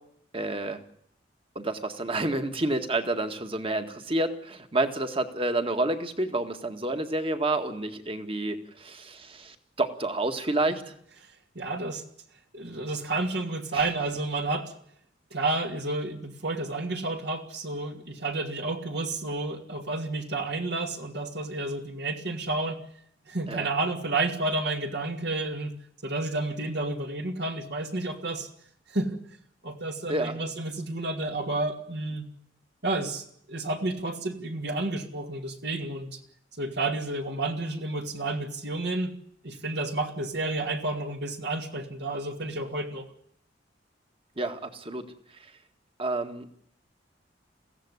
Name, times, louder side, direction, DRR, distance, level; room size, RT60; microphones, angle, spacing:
voice 1, 0.3-0.8 1.6-10.8 13.7-13.8 23.5-23.7 30.1-30.4 44.4-45.0 46.0-46.5, right 2 dB, 30° right, 8 dB, 1.9 m, -29 dB
voice 2, 11.5-12.0 12.5-14.7 15.3-22.8 23.3-25.7 26.0-28.5 28.9-29.2 29.6-32.2 32.8-36.2 36.6-39.1 39.4-43.1, right 2 dB, 65° right, 4 dB, 2.6 m, -31 dB
22.5 x 16.0 x 9.8 m, 0.67 s
head